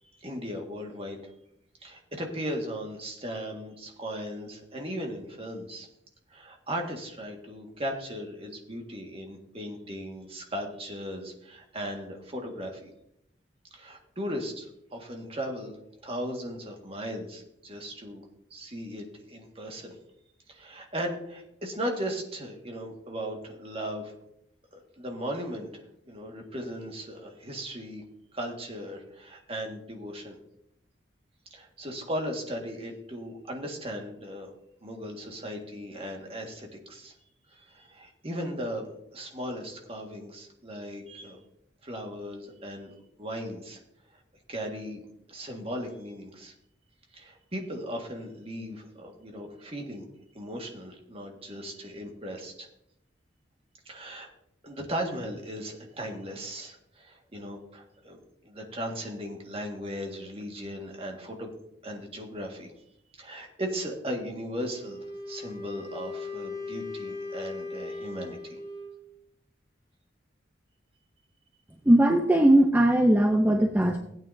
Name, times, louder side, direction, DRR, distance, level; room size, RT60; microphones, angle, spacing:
voice 1, 0.2-1.2 1.8-5.9 6.3-12.9 13.7-15.7 16.0-18.2 18.5-19.9 20.5-24.1 24.7-28.0 28.3-30.4 31.5-34.5 34.8-37.1 37.5-41.4 41.8-43.8 44.1-44.2 44.5-45.0 45.3-46.5 47.1-50.0 50.3-52.7 53.8-54.3 54.6-61.5 61.8-62.8 63.1-65.0 65.3-68.6, equal, 30° right, 2 dB, 1.7 m, -37 dB
Wind instrument woodwind instrument, 64.7-69.0, left 3 dB, 25° left, 4.9 m, -38 dB
voice 2, 71.9-74.0, right 1 dB, 10° right, 3 dB, 0.6 m, -19 dB
16.5 x 8.9 x 2.7 m, 0.77 s
head